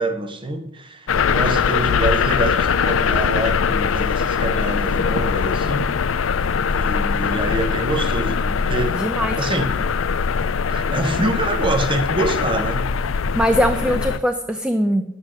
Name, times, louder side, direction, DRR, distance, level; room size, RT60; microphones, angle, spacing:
voice 1, 0.0-5.9 6.7-9.0 9.4-9.7 10.7-12.9, right 2 dB, 25° right, 1.0 m, -25 dB
sound 1, 1.1-14.2, left 6 dB, 75° left, 0.5 m, -21 dB
voice 2, 8.9-9.3 13.3-15.0, equal, 5° right, 0.5 m, -21 dB
9.9 x 8.3 x 6.4 m
head